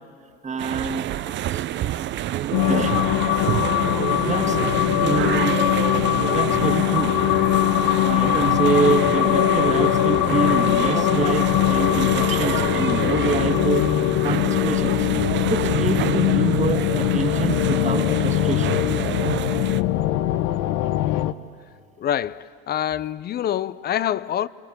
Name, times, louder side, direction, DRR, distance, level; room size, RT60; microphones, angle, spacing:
voice 1, 0.4-1.1 1.5-1.6 2.7-3.0 4.2-5.6 6.3-7.1 8.0-13.9 14.2-15.1 15.5-18.8, right 4 dB, 25° right, 2.0 m, -26 dB
sound 1, 0.6-19.8, right 12 dB, 40° right, 0.7 m, -28 dB
sound 2, 2.5-21.3, left 14 dB, 60° left, 1.0 m, -21 dB
voice 2, 22.0-24.5, left 10 dB, 35° left, 0.6 m, -26 dB
28.5 x 21.0 x 9.4 m
hypercardioid pair, 85°, 29 cm